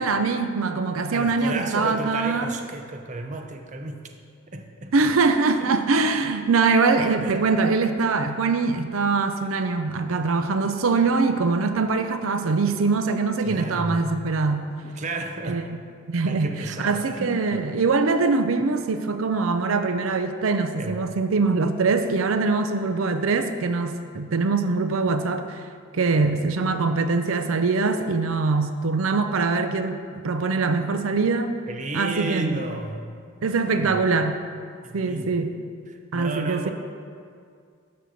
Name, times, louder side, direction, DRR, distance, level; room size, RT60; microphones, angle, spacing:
voice 1, 0.0-2.5 4.9-14.7 15.4-15.8 16.1-25.6 25.9-31.5 31.9-32.6 33.4-34.4 34.9-35.5 36.1-36.7, right 4 dB, 85° right, 8 dB, 0.5 m, -23 dB
voice 2, 1.1-4.0 4.5-4.9 7.2-7.5 13.4-14.2 14.8-15.6 16.3-17.6 20.8-21.1 31.7-33.1 33.6-34.0 34.8-35.4 35.9-36.7, right 2 dB, 35° right, 5 dB, 0.6 m, -33 dB
12.0 x 4.3 x 6.3 m, 2.2 s
head